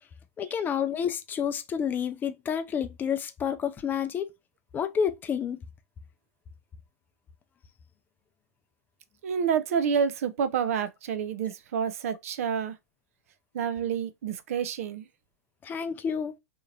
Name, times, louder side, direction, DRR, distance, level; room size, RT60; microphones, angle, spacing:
voice 1, 0.4-4.3 4.7-5.6 15.6-16.3, left 7 dB, 20° left, 0.4 m, -29 dB
voice 2, 9.2-12.8 13.5-15.1, right 7 dB, 60° right, 0.5 m, -28 dB
3.7 x 2.9 x 2.4 m
figure-of-eight pair, 100°, 9 cm